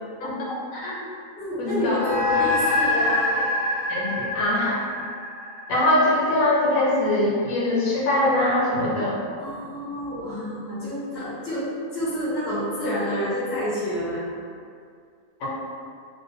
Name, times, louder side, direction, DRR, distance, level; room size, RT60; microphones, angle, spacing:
voice 1, 0.7-1.0 1.6-2.0 3.9-4.8 5.7-9.2 15.4-15.5, left 1 dB, 80° left, -5 dB, 1.0 m, -22 dB
voice 2, 1.4-3.3 9.4-14.2, equal, 20° left, -10 dB, 0.3 m, -28 dB
sound 1, 1.9-6.6, left 2 dB, 65° left, 0.7 m, -25 dB
2.2 x 2.2 x 2.6 m, 2.3 s
omnidirectional pair, 1.4 m